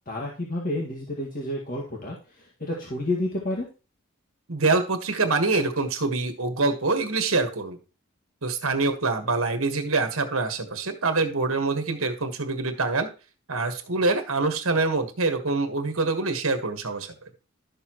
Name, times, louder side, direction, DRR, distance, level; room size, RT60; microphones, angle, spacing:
voice 1, 0.1-3.7, left 1 dB, 40° left, -2 dB, 1.9 m, -30 dB
voice 2, 4.5-7.8 8.4-13.1 13.5-17.3, right 3 dB, 70° right, 7 dB, 1.5 m, -25 dB
12.0 x 6.8 x 3.0 m, 0.33 s
head